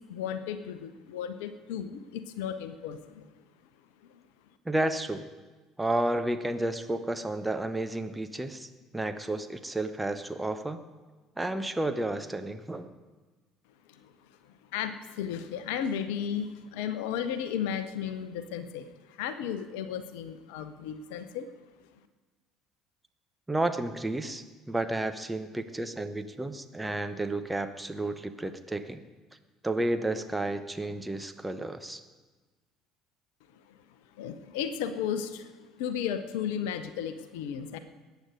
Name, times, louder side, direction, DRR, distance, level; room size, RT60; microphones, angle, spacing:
voice 1, 0.1-3.3 4.1-4.2 13.9-14.1 14.7-21.5 34.2-37.8, left 8 dB, 65° left, 11 dB, 0.8 m, -34 dB
voice 2, 4.6-5.2 5.8-10.8 11.4-12.9 23.5-29.0 29.6-32.0, right 1 dB, 10° right, 9 dB, 1.0 m, -31 dB
21.0 x 9.4 x 5.2 m, 1.3 s
figure-of-eight pair, 60°, 0 cm